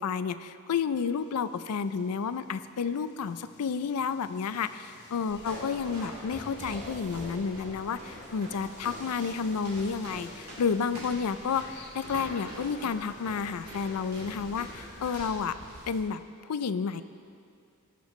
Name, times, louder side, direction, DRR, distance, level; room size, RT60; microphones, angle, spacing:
voice 1, 0.0-11.7 11.9-15.6 15.9-17.0, left 6 dB, 90° left, 13 dB, 0.4 m, -31 dB
sound 1, 0.8-15.5, left 3 dB, 50° left, 1.0 m, -54 dB
sound 2, 5.3-16.0, equal, 70° right, 2.4 m, -44 dB
sound 3, 6.6-9.8, right 4 dB, 35° right, 0.5 m, -51 dB
18.5 x 6.8 x 3.1 m, 2.4 s
head